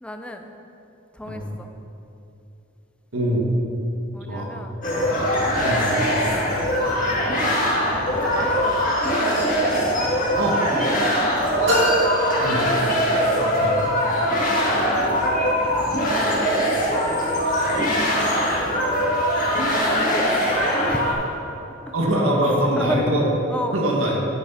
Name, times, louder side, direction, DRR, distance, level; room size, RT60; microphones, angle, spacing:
voice 1, 0.0-0.5 1.2-1.7 4.1-4.8 6.2-7.2 8.2-9.2 11.2-11.5 13.0-13.6 19.9-21.2 22.8-23.0 23.5-23.7, left 1 dB, 5° left, 5 dB, 0.5 m, -34 dB
voice 2, 3.1-3.5 4.3-4.5 5.6-5.9 10.4-10.6 12.4-12.6 13.4-13.7 21.9-23.3 23.7-24.2, right 1 dB, 90° right, -1 dB, 1.6 m, -23 dB
sound 1, 4.8-21.1, equal, 40° left, 1.8 m, -21 dB
sound 2, 11.6-13.3, equal, 70° right, 2.3 m, -24 dB
10.0 x 6.4 x 5.6 m, 2.9 s
head